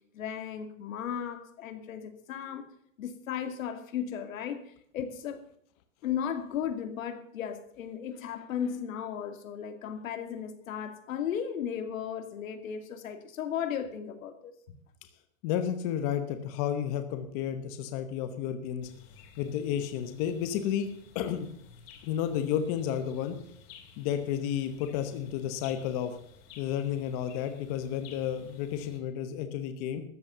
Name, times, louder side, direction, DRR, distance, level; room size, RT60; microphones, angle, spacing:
voice 1, 0.1-2.7 3.0-5.4 6.0-14.5, left 8 dB, 75° left, 8 dB, 2.4 m, -35 dB
voice 2, 15.4-18.9 19.4-20.9 21.1-21.5 22.0-23.4 24.0-26.2 26.6-30.0, left 9 dB, 30° left, 8 dB, 1.0 m, -31 dB
sound 1, 18.8-29.0, left 5 dB, 45° left, 3.0 m, -54 dB
13.5 x 8.4 x 6.9 m, 0.69 s
supercardioid pair, 175°, 40 cm